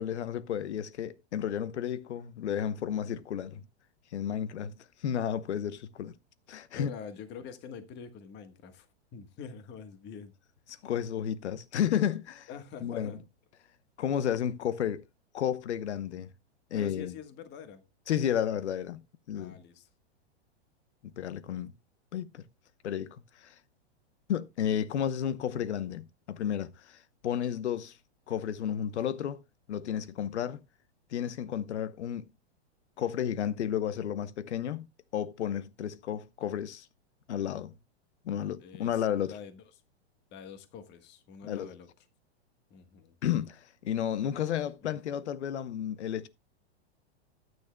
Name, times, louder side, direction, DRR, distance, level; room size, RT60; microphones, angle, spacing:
voice 1, 0.0-3.6 4.1-6.1 6.5-6.9 10.8-12.5 12.8-13.1 14.0-15.0 15.3-16.3 16.7-17.1 18.1-19.0 19.3-19.6 21.2-21.7 22.1-22.4 22.8-23.5 24.3-28.0 28.3-29.4 29.7-30.6 31.1-32.3 33.0-34.9 35.1-36.9 37.3-37.7 38.2-39.4 41.4-41.7 43.2-46.3, left 9 dB, 85° left, 0.9 m, -32 dB
voice 2, 6.7-10.3 12.5-13.2 16.7-17.8 19.3-19.9 38.6-39.6 40.3-41.9 42.7-43.1, left 7 dB, 30° left, 1.4 m, -46 dB
13.5 x 9.3 x 2.2 m
hypercardioid pair, 135°, 33 cm